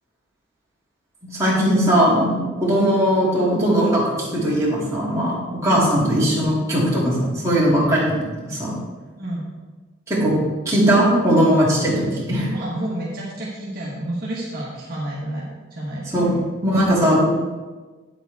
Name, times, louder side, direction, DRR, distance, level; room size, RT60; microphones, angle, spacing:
voice 1, 1.3-8.7 10.1-10.3 10.7-12.5 16.1-16.3 16.6-17.2, equal, 15° right, -8 dB, 2.4 m, -19 dB
voice 2, 12.4-16.4, right 1 dB, 45° right, -6 dB, 1.4 m, -30 dB
9.2 x 7.7 x 3.5 m, 1.3 s
head